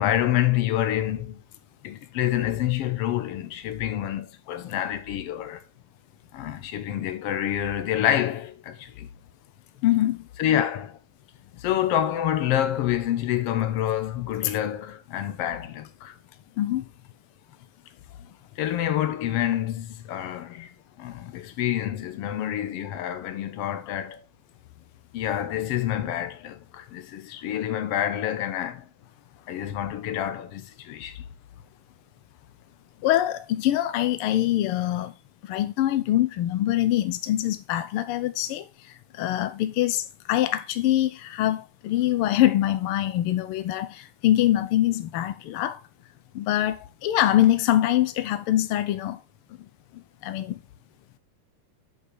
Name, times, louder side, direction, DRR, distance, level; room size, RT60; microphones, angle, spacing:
voice 1, 0.0-1.4 1.8-5.6 6.3-9.1 10.4-11.0 11.6-16.1 18.6-24.2 25.1-28.9 29.5-31.2, left 11 dB, 70° left, 1.5 m, -27 dB
voice 2, 9.8-10.3 14.4-14.5 16.6-16.8 33.0-35.1 35.4-38.7 39.1-45.8 46.3-49.2 50.2-50.6, left 13 dB, 90° left, 1.2 m, -24 dB
8.6 x 5.3 x 4.7 m
omnidirectional pair, 3.5 m